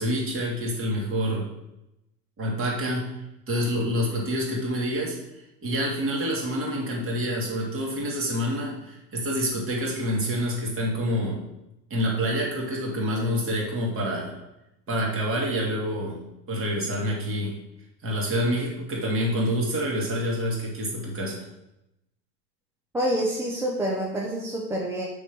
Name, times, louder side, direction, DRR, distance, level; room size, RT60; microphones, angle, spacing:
voice 1, 0.0-1.5 2.4-3.1 3.5-11.4 11.9-14.3 14.9-16.2 16.5-17.5 18.0-21.4, equal, 25° right, -2 dB, 2.4 m, -27 dB
voice 2, 22.9-25.1, equal, 5° right, -2 dB, 0.4 m, -27 dB
6.2 x 3.6 x 6.0 m, 0.89 s
figure-of-eight pair, 85°, 49 cm